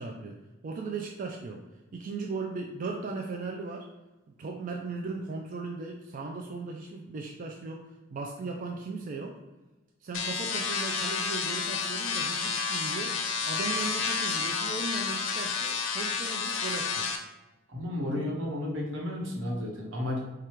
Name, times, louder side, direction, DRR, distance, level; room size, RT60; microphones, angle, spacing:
voice 1, 0.0-1.6 1.9-3.9 4.4-9.4 10.0-17.1, right 3 dB, 40° right, 1 dB, 0.3 m, -37 dB
sound 1, 10.1-17.2, left 5 dB, 70° left, 0.6 m, -30 dB
voice 2, 17.7-20.2, left 1 dB, 80° right, -1 dB, 1.2 m, -32 dB
4.7 x 2.4 x 4.4 m, 1.1 s
head